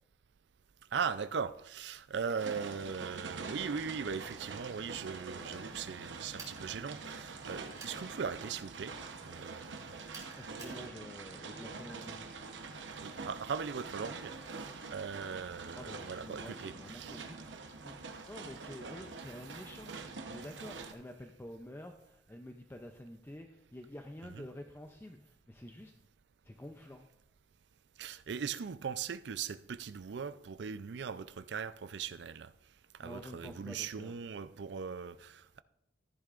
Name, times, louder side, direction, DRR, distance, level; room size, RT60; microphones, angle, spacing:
voice 1, 0.9-8.9 9.2-9.8 12.9-17.3 24.4-24.5 28.0-32.5 33.0-35.6, right 6 dB, 70° right, 0.4 m, -39 dB
sound 1, 2.4-20.9, right 4 dB, 90° right, 0.9 m, -45 dB
sound 2, 6.4-6.6 7.8-8.0 10.1-10.8, right 3 dB, 20° right, 2.5 m, -49 dB
voice 2, 10.4-12.2 15.7-17.6 17.8-20.0 20.3-25.9 26.4-27.1 33.0-34.2, left 1 dB, 15° left, 0.5 m, -49 dB
14.0 x 10.5 x 2.5 m
head